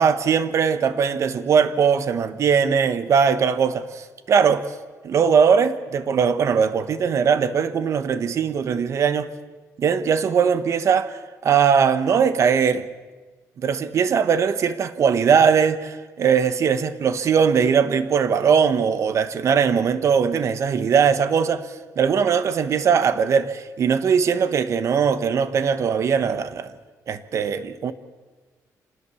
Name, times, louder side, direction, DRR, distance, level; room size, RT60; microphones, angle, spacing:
voice 1, 0.0-4.6 5.0-9.3 9.8-11.2 11.4-12.9 13.6-21.7 22.0-26.7 27.1-27.9, right 6 dB, 50° right, 1.2 m, -20 dB
26.5 x 19.5 x 7.2 m
cardioid pair, 145°, 6 cm